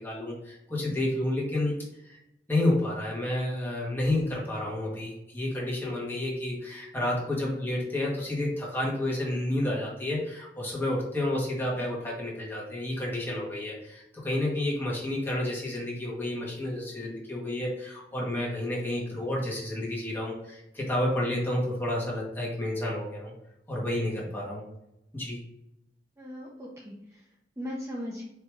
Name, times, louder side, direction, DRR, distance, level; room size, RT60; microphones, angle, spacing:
voice 1, 0.0-2.2 2.5-23.3 23.7-24.6 25.1-25.4, left 1 dB, 15° left, -4 dB, 1.3 m, -30 dB
voice 2, 26.2-28.2, equal, 15° right, -4 dB, 0.6 m, -39 dB
4.5 x 2.9 x 3.4 m, 0.87 s
head